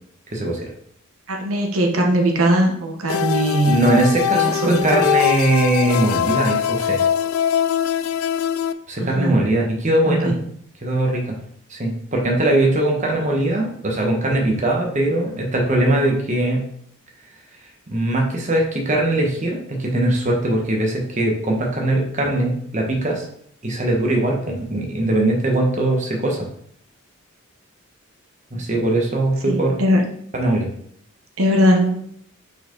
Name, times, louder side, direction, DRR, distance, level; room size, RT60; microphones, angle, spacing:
voice 1, 0.3-0.7 3.7-7.0 8.9-10.3 10.8-11.3 11.7-16.6 17.9-23.2 23.6-26.5 28.5-29.8 30.3-30.7, right 1 dB, 35° right, 0 dB, 1.1 m, -20 dB
voice 2, 1.3-3.8 4.3-5.0 9.0-9.4 10.1-10.4 29.4-30.0 31.4-32.0, equal, 75° right, 1 dB, 1.0 m, -20 dB
sound 1, 3.1-8.7, left 9 dB, 70° left, 0.4 m, -22 dB
5.7 x 4.5 x 3.9 m, 0.65 s
head